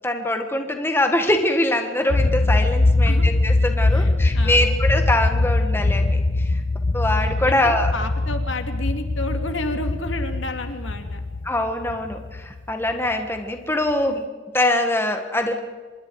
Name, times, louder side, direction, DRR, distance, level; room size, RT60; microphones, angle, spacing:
voice 1, 0.0-6.6 6.9-7.9 11.4-14.2 14.5-15.6, left 1 dB, 10° left, 5 dB, 1.5 m, -23 dB
sound 1, 2.1-13.4, left 2 dB, 40° left, 0.7 m, -22 dB
voice 2, 3.9-4.8 7.5-11.2, left 1 dB, 70° left, 6 dB, 2.3 m, -31 dB
26.0 x 21.5 x 4.8 m, 1.4 s
head